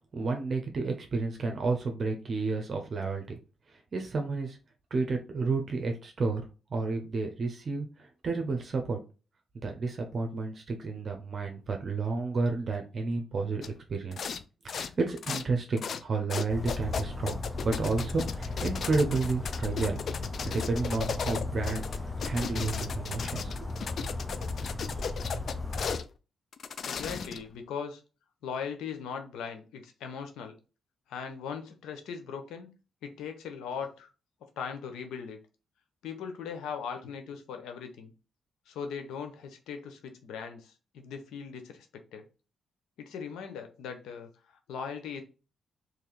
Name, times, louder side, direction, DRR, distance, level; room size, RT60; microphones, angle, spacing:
voice 1, 0.1-3.4 3.9-4.6 4.9-6.4 6.7-9.0 9.6-13.6 13.9-14.3 14.6-20.0 20.4-23.7, right 3 dB, 50° right, 4 dB, 0.7 m, -31 dB
sound 1, 13.6-13.7 14.1-14.4 14.7-15.4 15.8-16.0 16.3-26.0 26.5-27.5, left 6 dB, 60° left, 0.4 m, -36 dB
Bird vocalization bird call bird song, 16.5-26.0, left 3 dB, 25° left, 0.8 m, -35 dB
voice 2, 26.8-28.0 28.4-30.6 31.1-32.7 33.0-34.1 34.6-35.4 36.0-38.1 38.7-42.3 43.0-45.2, left 6 dB, 90° left, 6 dB, 0.8 m, -39 dB
3.2 x 2.8 x 3.9 m, 0.32 s
cardioid pair, 65°, 0 cm